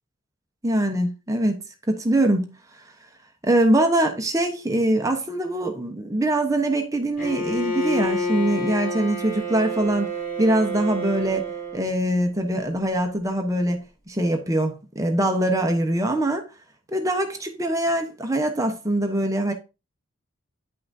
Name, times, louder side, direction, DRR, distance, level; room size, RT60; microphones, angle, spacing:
voice 1, 0.6-1.6 1.9-2.5 3.4-10.1 10.4-13.8 14.1-16.5 16.9-19.5, right 1 dB, 15° right, 1.0 m, -23 dB
Bowed string instrument, 7.2-11.9, equal, 40° left, 3.2 m, -28 dB
9.9 x 5.7 x 2.7 m
head